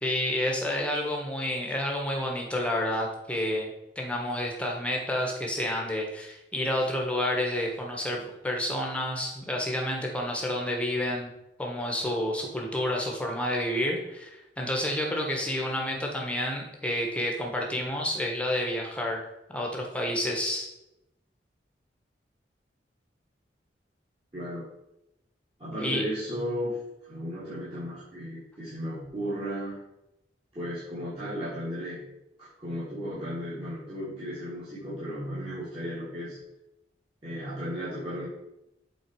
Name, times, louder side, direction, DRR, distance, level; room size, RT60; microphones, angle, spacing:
voice 1, 0.0-11.3 11.6-20.7 25.7-26.0, left 1 dB, 5° left, 0 dB, 1.3 m, -30 dB
voice 2, 24.3-24.7 25.6-29.8 30.5-32.1 32.4-36.4 37.2-38.3, equal, 30° right, -13 dB, 2.7 m, -35 dB
8.0 x 4.2 x 4.7 m, 0.88 s
head